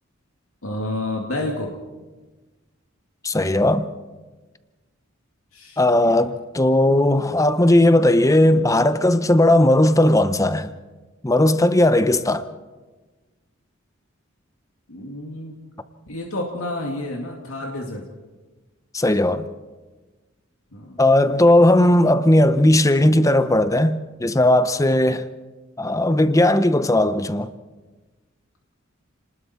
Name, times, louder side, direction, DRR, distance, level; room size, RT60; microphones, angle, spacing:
voice 1, 0.6-1.7 5.5-6.2 14.9-15.5 16.1-18.0 20.7-20.9, left 1 dB, 90° left, 2.4 m, -30 dB
voice 2, 3.2-3.9 5.8-10.7 11.2-12.5 18.9-19.5 21.0-25.2 25.8-27.5, left 1 dB, 15° left, 0.7 m, -17 dB
30.0 x 20.0 x 4.4 m
head